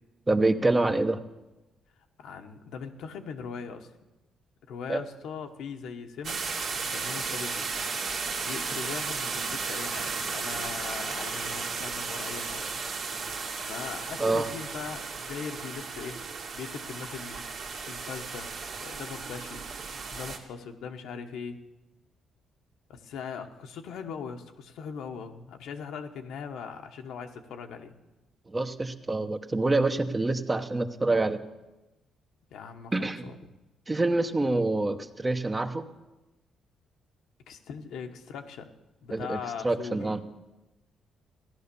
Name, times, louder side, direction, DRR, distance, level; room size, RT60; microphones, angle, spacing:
voice 1, 0.3-1.2 4.9-5.0 14.2-14.5 28.5-31.4 32.9-33.3 33.9-35.9 39.1-39.4 39.6-40.2, right 2 dB, 20° right, 8 dB, 1.0 m, -26 dB
voice 2, 2.2-3.9 4.7-6.4 6.7-7.8 8.4-12.6 13.5-16.2 16.5-17.5 17.8-18.5 18.8-19.6 20.1-21.6 22.9-27.9 32.5-33.4 37.5-38.7 39.0-40.1, left 6 dB, 80° left, 5 dB, 1.2 m, -40 dB
sound 1, 6.2-20.4, right 4 dB, 65° right, 2.0 m, -34 dB
15.0 x 11.0 x 6.9 m, 1.1 s
cardioid pair, 90°, 0 cm